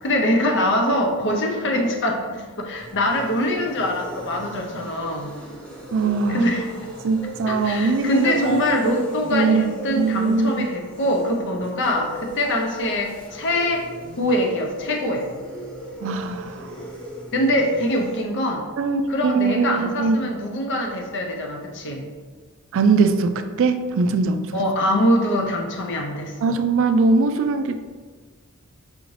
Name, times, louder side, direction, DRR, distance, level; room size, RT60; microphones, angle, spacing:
voice 1, 0.0-5.3 6.3-6.7 7.5-13.9 14.2-15.3 17.3-18.7 19.1-22.1 24.5-26.5, left 1 dB, 55° left, 2 dB, 0.6 m, -23 dB
sound 1, 2.7-18.2, equal, 5° left, 0.9 m, -38 dB
voice 2, 5.9-6.5 7.0-8.6 9.3-10.7 16.0-16.7 18.8-20.2 22.7-24.6 26.4-27.8, right 4 dB, 60° right, 8 dB, 0.3 m, -21 dB
4.9 x 2.6 x 3.1 m, 1.5 s
head